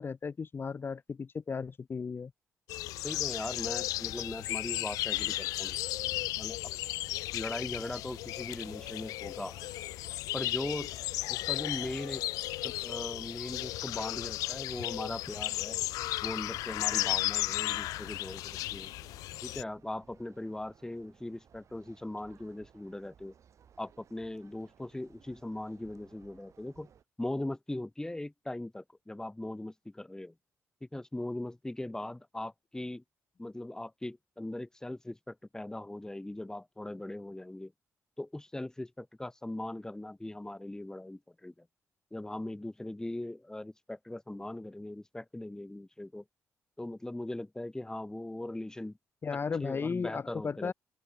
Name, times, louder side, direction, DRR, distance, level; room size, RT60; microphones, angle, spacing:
voice 1, 0.0-2.3 49.2-50.7, left 5 dB, 40° left, 0.8 m, -35 dB
sound 1, 2.7-19.6, left 17 dB, 90° left, 1.2 m, -35 dB
voice 2, 3.0-5.8 6.4-6.7 7.3-9.5 10.3-10.9 11.3-12.2 12.6-15.8 16.2-18.9 19.4-23.3 23.8-26.9 27.2-30.3 30.8-33.0 33.4-37.7 38.2-41.7 42.1-46.2 46.8-49.0 49.6-50.7, left 1 dB, 10° left, 1.2 m, -40 dB
sound 2, 8.0-27.0, right 8 dB, 60° right, 6.3 m, -61 dB
open air
supercardioid pair, 70°, 6 cm